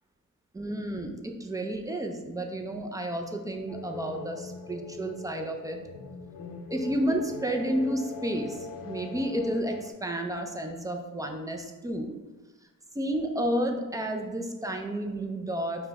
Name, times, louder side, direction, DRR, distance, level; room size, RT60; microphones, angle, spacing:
voice 1, 0.5-5.8 6.7-12.2 12.9-15.9, right 1 dB, 10° right, 3 dB, 0.4 m, -31 dB
sound 1, 3.7-9.9, left 5 dB, 80° left, 0.5 m, -41 dB
5.7 x 2.2 x 3.4 m, 1.2 s
cardioid pair, 110°, 33 cm